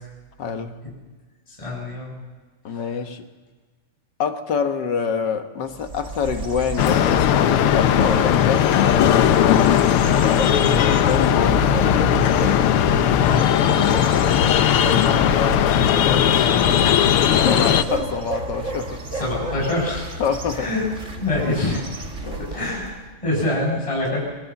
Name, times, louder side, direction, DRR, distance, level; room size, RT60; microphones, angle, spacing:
voice 1, 0.4-0.8 2.6-3.3 4.2-9.8 11.1-11.7 14.9-15.6 17.4-19.0 20.2-20.7 22.2-22.5, left 6 dB, 50° left, 7 dB, 1.4 m, -26 dB
voice 2, 1.5-2.1 2.7-2.9 10.6-11.0 13.2-14.0 16.3-17.0 19.1-20.1 20.5-20.9 21.2-21.9 22.4-23.0 23.2-24.2, left 2 dB, 10° left, -3 dB, 6.3 m, -26 dB
sound 1, 5.7-23.0, right 2 dB, 30° right, 1.9 m, -31 dB
sound 2, 6.8-17.8, left 10 dB, 70° left, 1.3 m, -18 dB
23.0 x 21.0 x 7.1 m, 1.3 s
omnidirectional pair, 3.4 m